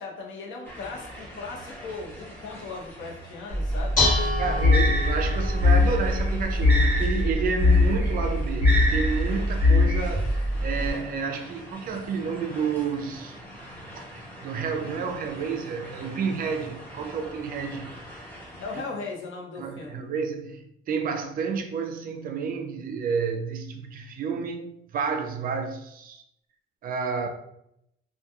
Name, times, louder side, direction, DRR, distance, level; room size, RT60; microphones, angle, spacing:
voice 1, 0.0-4.0 18.6-20.0, left 4 dB, 70° left, 0.7 m, -38 dB
sound 1, 0.6-18.8, equal, 10° left, 0.6 m, -44 dB
Dishes pots and pans, 3.5-10.9, equal, 40° left, 1.2 m, -27 dB
voice 2, 4.4-13.4 14.0-14.1 14.4-17.9 19.6-26.2 26.8-27.3, right 5 dB, 45° right, 0.4 m, -30 dB
sound 2, 4.6-10.0, left 3 dB, 10° right, 0.9 m, -21 dB
2.2 x 2.2 x 2.8 m
cardioid pair, 160°, 21 cm